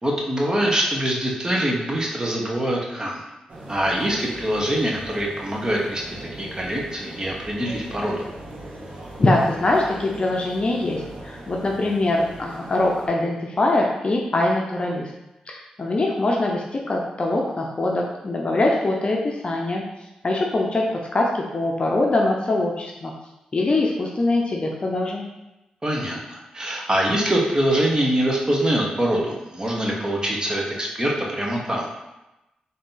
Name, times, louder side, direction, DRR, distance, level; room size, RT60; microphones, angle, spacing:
voice 1, 0.0-3.2 3.7-8.3 25.8-31.9, right 1 dB, 25° right, -1 dB, 1.0 m, -24 dB
sound 1, 3.5-13.1, right 1 dB, 70° right, 0.9 m, -40 dB
voice 2, 9.2-15.1 15.5-19.8 20.2-23.1 23.5-25.2, left 2 dB, 45° left, -1 dB, 0.6 m, -23 dB
3.7 x 2.7 x 3.8 m, 0.97 s
cardioid pair, 50°, 3 cm